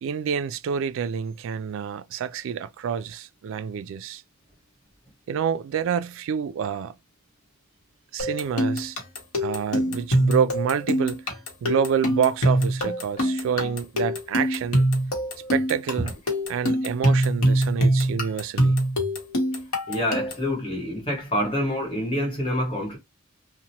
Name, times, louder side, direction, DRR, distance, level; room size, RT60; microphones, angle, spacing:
voice 1, 0.0-4.2 5.3-6.9 8.1-9.0 9.4-11.2 11.6-14.9 15.5-16.1 16.5-18.8, right 7 dB, 65° right, 0.3 m, -27 dB
sound 1, 8.2-20.5, equal, 85° left, 0.9 m, -24 dB
voice 2, 19.9-23.0, equal, 25° left, 1.2 m, -27 dB
2.9 x 2.1 x 2.8 m
head